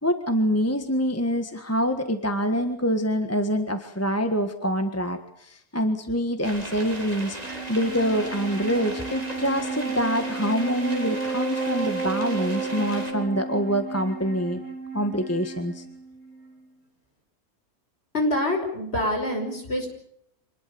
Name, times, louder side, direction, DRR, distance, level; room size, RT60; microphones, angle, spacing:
voice 1, 0.0-14.6 14.9-15.8, equal, 10° left, 6 dB, 1.6 m, -25 dB
sound 1, 6.4-13.1, right 1 dB, 25° right, 4.0 m, -37 dB
Wind instrument woodwind instrument, 7.3-16.8, right 4 dB, 70° left, 6.4 m, -33 dB
voice 2, 18.1-19.9, left 1 dB, 45° left, 4 dB, 5.8 m, -25 dB
26.0 x 20.0 x 7.0 m, 0.73 s
omnidirectional pair, 1.5 m